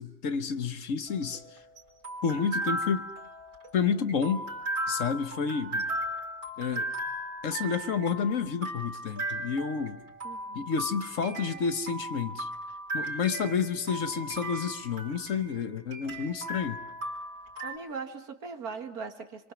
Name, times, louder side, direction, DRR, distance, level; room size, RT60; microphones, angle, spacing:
voice 1, 0.0-1.4 2.2-3.0 3.7-4.5 4.9-5.9 6.6-6.9 7.4-10.0 10.5-12.5 12.9-16.8, left 6 dB, 60° left, 1.4 m, -30 dB
sound 1, 1.1-17.8, right 1 dB, 60° right, 4.6 m, -36 dB
voice 2, 10.2-10.7 17.6-19.5, right 5 dB, 80° right, 2.3 m, -40 dB
27.0 x 24.5 x 7.2 m
omnidirectional pair, 1.6 m